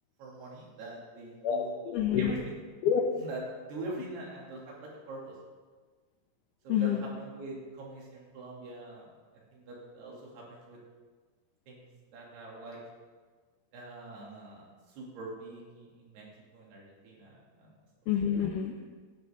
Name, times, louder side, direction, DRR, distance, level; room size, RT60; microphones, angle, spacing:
voice 1, 0.2-1.8 2.2-2.6 3.2-5.4 6.6-9.1 9.5-10.8 11.7-11.8 12.1-12.8 13.7-16.3 16.5-17.7, right 2 dB, 85° right, -3 dB, 4.8 m, -43 dB
voice 2, 1.4-2.3 2.8-3.0 6.7-7.0 18.1-18.7, left 8 dB, 75° left, 2 dB, 2.0 m, -27 dB
18.5 x 10.5 x 3.8 m, 1.4 s
omnidirectional pair, 4.5 m